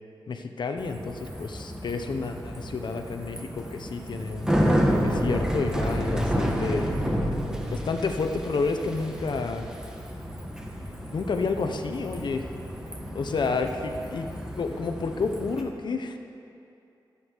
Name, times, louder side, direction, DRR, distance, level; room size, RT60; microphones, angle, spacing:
voice 1, 0.3-4.5 5.0-6.9 7.7-9.7 11.1-12.5 13.1-14.3 14.6-16.2, left 4 dB, 65° left, 5 dB, 1.0 m, -30 dB
Bicycle, 0.8-15.6, equal, 10° right, 1.5 m, -30 dB
24.0 x 8.6 x 4.7 m, 2.6 s
wide cardioid pair, 140°, 8 cm